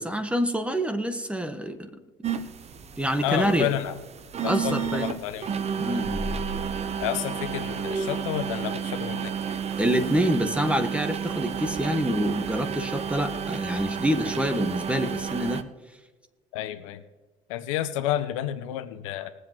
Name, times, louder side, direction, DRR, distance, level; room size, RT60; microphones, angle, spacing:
voice 1, 0.0-1.9 3.0-3.7 4.4-5.0 5.8-6.3 9.8-15.6, right 1 dB, 5° right, 7 dB, 1.6 m, -26 dB
sound 1, 2.2-15.6, right 7 dB, 40° right, 1.0 m, -31 dB
voice 2, 3.2-4.0 4.4-5.5 5.9-6.0 7.0-9.6 16.5-17.0 17.5-19.3, left 12 dB, 80° left, 11 dB, 0.8 m, -30 dB
sound 2, 6.0-8.5, right 1 dB, 65° right, 3.1 m, -38 dB
21.0 x 8.0 x 3.1 m, 1.3 s
hypercardioid pair, 65°, 16 cm